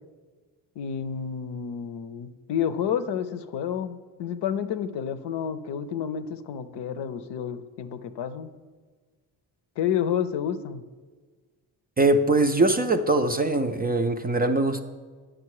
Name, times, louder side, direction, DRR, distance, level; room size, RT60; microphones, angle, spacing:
voice 1, 0.8-8.5 9.8-10.8, left 8 dB, 65° left, 12 dB, 0.7 m, -30 dB
voice 2, 12.0-14.8, right 2 dB, 20° right, 7 dB, 0.4 m, -22 dB
9.9 x 6.4 x 4.8 m, 1.4 s
cardioid pair, 80°, 45 cm